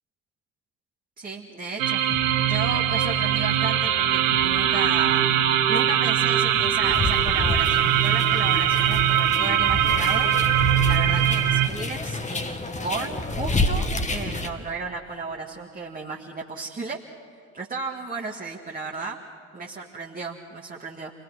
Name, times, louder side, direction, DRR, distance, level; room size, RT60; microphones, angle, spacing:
voice 1, 1.2-2.0 2.5-5.3 5.7-10.3 10.8-17.0 17.5-19.2 19.5-21.1, right 4 dB, 20° right, -1 dB, 1.7 m, -34 dB
sound 1, 1.8-11.7, right 11 dB, 70° right, 1.2 m, -21 dB
sound 2, 2.1-8.2, left 5 dB, 45° left, 2.1 m, -38 dB
sound 3, 6.8-14.5, left 2 dB, 15° left, 1.6 m, -29 dB
27.5 x 20.5 x 6.3 m, 2.4 s
figure-of-eight pair, 55°, 41 cm